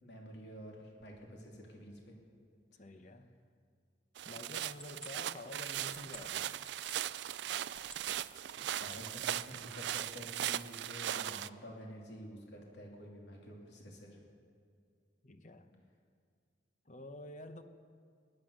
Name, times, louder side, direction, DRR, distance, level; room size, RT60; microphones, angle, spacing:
voice 1, 0.0-2.1 8.8-14.2, equal, 65° left, -1 dB, 2.8 m, -49 dB
voice 2, 2.8-3.3 4.2-6.6 15.2-15.9 16.9-17.6, left 1 dB, 40° left, 8 dB, 0.9 m, -49 dB
sound 1, 4.2-7.0 7.6-8.2 8.6-9.4, left 1 dB, 5° left, 0.8 m, -54 dB
sound 2, 4.2-11.5, right 11 dB, 70° right, 0.3 m, -39 dB
18.5 x 11.0 x 6.5 m, 2.2 s
head